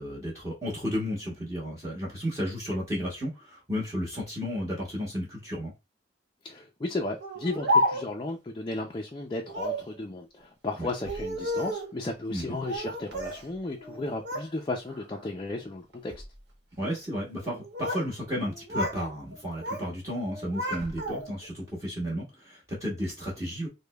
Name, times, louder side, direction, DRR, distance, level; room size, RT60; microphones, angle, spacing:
voice 1, 0.0-5.7 10.8-10.9 12.3-12.6 16.8-23.7, equal, 20° right, 1.0 m, -33 dB
voice 2, 6.4-16.1, left 2 dB, 25° left, 0.4 m, -34 dB
Speech, 7.2-8.3 9.5-9.9 10.9-11.9 12.6-13.4 13.8-14.5 14.9-15.3 15.9-16.3 17.4-18.1 18.4-19.0 19.3-19.9 20.2-21.5, equal, 75° right, 1.1 m, -31 dB
5.0 x 2.2 x 2.2 m
head